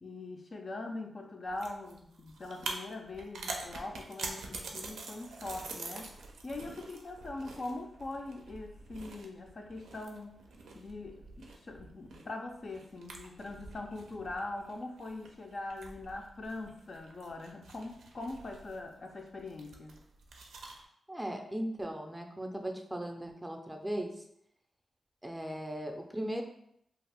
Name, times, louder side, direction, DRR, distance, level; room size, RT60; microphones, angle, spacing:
voice 1, 0.0-6.1 6.4-10.4 10.7-20.0, left 2 dB, 55° left, 2 dB, 0.4 m, -42 dB
sound 1, 1.5-20.8, right 3 dB, 85° right, 0.4 m, -46 dB
voice 2, 21.1-24.1 25.2-26.4, right 1 dB, 15° right, 3 dB, 0.5 m, -37 dB
2.4 x 2.4 x 3.4 m, 0.73 s
cardioid pair, 55°, 0 cm